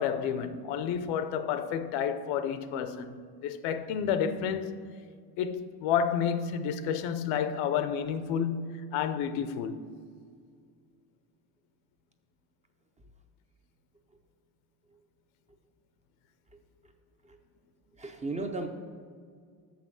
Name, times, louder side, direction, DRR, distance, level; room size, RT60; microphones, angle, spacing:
voice 1, 0.0-4.8 5.4-9.9, left 7 dB, 90° left, 0.8 m, -30 dB
voice 2, 18.0-18.7, right 3 dB, 15° right, 0.4 m, -35 dB
6.8 x 5.8 x 7.4 m
cardioid pair, 140°, 45 cm